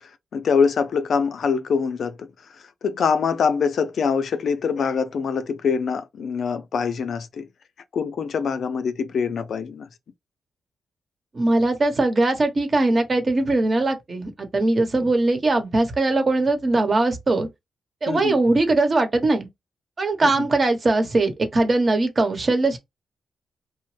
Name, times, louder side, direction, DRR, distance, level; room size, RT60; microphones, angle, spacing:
voice 1, 0.3-2.3 2.8-7.5 7.9-9.9 18.1-18.4 20.2-20.5, left 6 dB, 70° left, 0.4 m, -24 dB
voice 2, 11.3-17.5 18.0-19.5 20.0-22.8, right 2 dB, 40° right, 0.9 m, -20 dB
3.0 x 2.0 x 3.1 m
cardioid pair, 75°, 0 cm